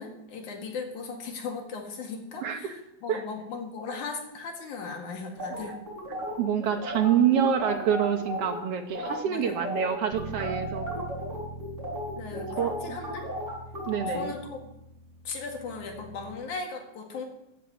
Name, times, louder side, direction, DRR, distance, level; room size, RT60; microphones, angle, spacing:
voice 1, 0.0-5.8 7.2-7.3 9.0-9.7 12.2-13.2 14.1-14.7 15.3-17.3, left 4 dB, 85° left, 2 dB, 3.6 m, -37 dB
voice 2, 2.4-2.8 3.1-3.2 6.4-10.9 12.6-13.0 13.9-14.3, right 8 dB, 65° right, 6 dB, 1.8 m, -26 dB
sound 1, 5.4-8.6 8.9-9.1 9.4-14.2, equal, 20° right, 6.8 m, -35 dB
Bass guitar, 10.1-16.4, right 4 dB, 85° right, 2.4 m, -42 dB
16.0 x 7.5 x 7.5 m, 0.85 s
omnidirectional pair, 3.4 m